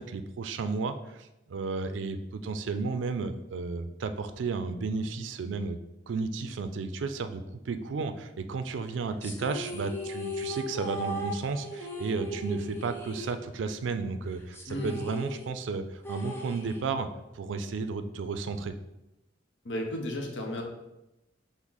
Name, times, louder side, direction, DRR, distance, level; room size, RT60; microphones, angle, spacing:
voice 1, 0.0-5.8 6.1-17.1 17.3-18.7, right 4 dB, 85° right, 10 dB, 0.4 m, -33 dB
sound 1, 9.2-13.9 14.1-14.2 14.5-17.2, left 1 dB, 15° left, 0.6 m, -38 dB
voice 2, 19.6-20.6, equal, 75° left, 2 dB, 0.8 m, -33 dB
6.0 x 2.0 x 3.9 m, 0.93 s
head